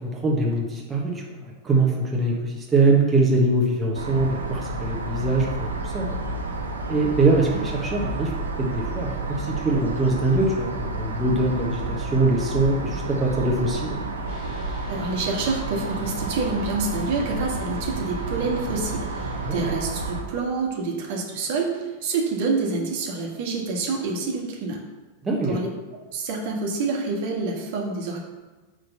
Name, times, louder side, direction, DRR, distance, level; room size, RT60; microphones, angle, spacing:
voice 1, 0.0-6.0 6.9-8.3 8.6-14.0 19.4-19.7 25.2-25.6, right 2 dB, 15° right, -2 dB, 1.4 m, -23 dB
sound 1, 3.9-20.2, right 2 dB, 70° right, 1.0 m, -30 dB
sound 2, 14.3-19.6, left 4 dB, 55° left, 1.4 m, -43 dB
voice 2, 14.9-24.8 25.4-25.7 26.1-28.2, right 3 dB, 50° right, -1 dB, 1.7 m, -27 dB
6.0 x 5.1 x 6.8 m, 1.2 s
figure-of-eight pair, 90°, 0 cm